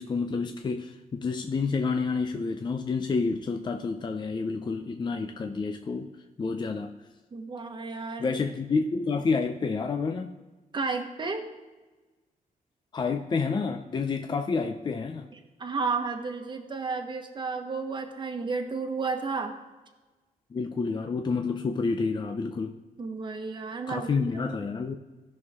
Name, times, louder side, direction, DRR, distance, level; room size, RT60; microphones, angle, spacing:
voice 1, 0.0-6.1 6.4-6.9 8.2-10.3 12.9-15.3 20.5-22.8 23.9-25.0, left 4 dB, 30° left, 5 dB, 0.6 m, -29 dB
voice 2, 7.3-8.4 10.7-11.5 15.3-19.6 23.0-24.4, right 4 dB, 30° right, 5 dB, 1.3 m, -32 dB
17.0 x 6.3 x 3.6 m, 1.2 s
wide cardioid pair, 140°, 15 cm